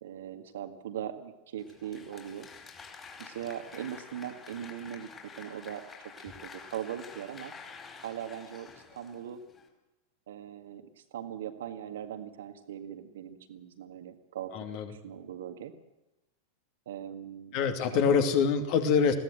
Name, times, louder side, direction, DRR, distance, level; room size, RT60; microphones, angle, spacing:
voice 1, 0.0-2.5 3.2-5.1 5.4-5.9 6.2-7.5 8.0-9.4 10.3-14.5 14.9-15.7 16.9-17.6 17.9-18.2, right 10 dB, 60° right, 8 dB, 1.8 m, -40 dB
Applause, 1.6-9.7, left 5 dB, 20° left, 4.5 m, -49 dB
voice 2, 14.5-14.9 17.5-19.1, left 6 dB, 45° left, 6 dB, 2.6 m, -25 dB
21.0 x 16.5 x 7.8 m, 0.99 s
figure-of-eight pair, 90°, 0 cm